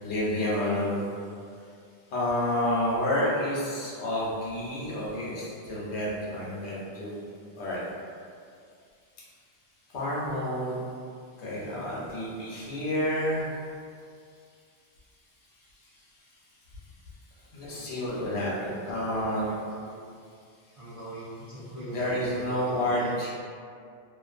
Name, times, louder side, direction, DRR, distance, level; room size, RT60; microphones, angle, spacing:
voice 1, 0.0-1.0 2.1-7.2 7.6-7.8 9.9-10.8 11.4-13.5 17.5-19.5 21.9-23.3, left 1 dB, 75° left, -6 dB, 0.9 m, -29 dB
voice 2, 19.1-20.0 20.8-23.3, right 1 dB, 35° right, -13 dB, 0.7 m, -42 dB
2.4 x 2.4 x 2.4 m, 2.3 s
omnidirectional pair, 1.2 m